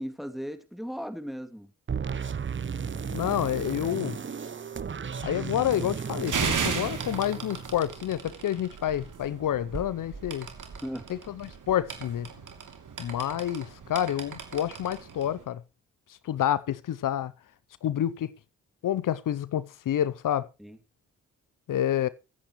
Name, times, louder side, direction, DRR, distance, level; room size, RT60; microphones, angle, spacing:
voice 1, 0.0-1.7 10.8-11.1 20.6-20.8, equal, ahead, 2.7 m, -36 dB
sound 1, 1.9-8.0, right 6 dB, 35° right, 0.8 m, -35 dB
voice 2, 3.1-4.2 5.2-10.5 11.1-12.3 13.0-15.6 16.3-17.3 17.8-18.3 18.8-20.5 21.7-22.1, left 11 dB, 70° left, 0.7 m, -28 dB
sound 2, 5.4-15.4, right 6 dB, 65° right, 2.9 m, -36 dB
23.0 x 8.6 x 3.1 m
supercardioid pair, 40°, 33 cm